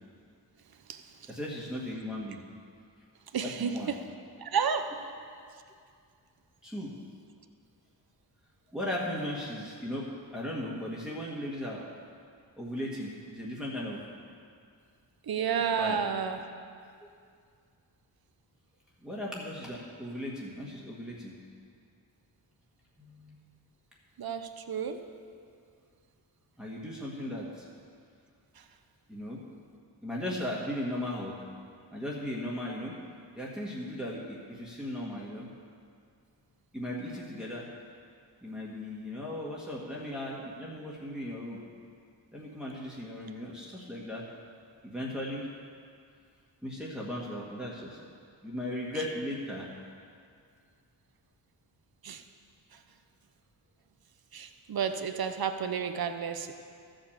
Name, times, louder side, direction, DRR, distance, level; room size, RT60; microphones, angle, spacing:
voice 1, 1.3-2.4 3.4-3.9 6.6-6.9 8.7-10.1 10.3-11.9 12.6-14.0 15.7-16.0 19.0-21.4 23.0-23.4 26.6-27.7 29.1-29.4 30.0-31.4 31.9-33.0 33.4-35.5 36.7-37.7 38.4-41.6 42.3-44.3 44.8-45.5 46.6-48.1 48.4-49.7, left 1 dB, ahead, -5 dB, 1.7 m, -37 dB
voice 2, 3.3-4.0 4.4-4.9 15.2-16.5 24.2-25.0 28.6-28.7 52.0-52.2 52.7-52.8 54.3-56.5, right 7 dB, 50° right, 7 dB, 0.8 m, -31 dB
13.0 x 5.2 x 7.3 m, 2.3 s
cardioid pair, 60°, 46 cm